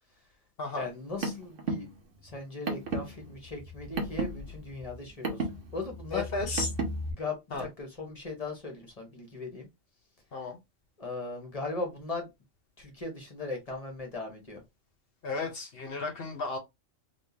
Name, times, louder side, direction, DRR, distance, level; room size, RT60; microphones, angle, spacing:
voice 1, 0.7-1.9 2.3-5.4 5.7-6.3 7.1-9.7 11.0-12.3 12.8-14.6, left 3 dB, 30° left, 1.2 m, -38 dB
Car, 0.9-7.1, right 2 dB, 75° right, 1.2 m, -35 dB
voice 2, 6.1-6.7 7.5-7.6 10.3-10.6 15.2-16.6, left 3 dB, 50° left, 1.0 m, -33 dB
3.6 x 2.9 x 2.7 m
omnidirectional pair, 1.3 m